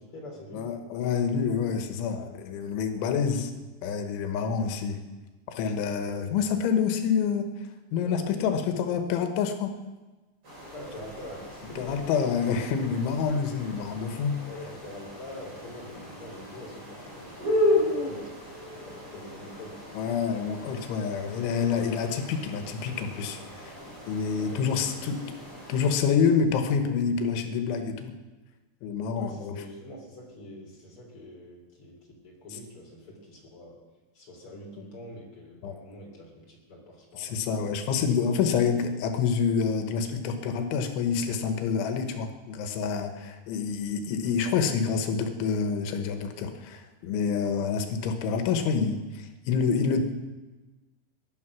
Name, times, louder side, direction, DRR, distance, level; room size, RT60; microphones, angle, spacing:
voice 1, 0.0-0.7 3.0-3.2 4.6-4.7 8.0-9.0 10.7-12.2 14.4-18.3 18.7-19.8 24.3-25.4 29.1-33.8 34.1-37.4, left 1 dB, 30° left, -1 dB, 3.7 m, -45 dB
voice 2, 0.5-3.5 3.8-5.0 5.5-7.5 7.9-9.8 11.8-14.4 20.0-23.8 24.1-25.2 25.7-28.1 28.8-29.6 34.8-34.9 35.6-35.7 37.2-50.0, left 6 dB, 85° left, 7 dB, 3.7 m, -27 dB
sound 1, 10.4-25.9, left 1 dB, 30° right, 8.5 m, -34 dB
19.5 x 12.0 x 6.1 m, 1.2 s
omnidirectional pair, 5.3 m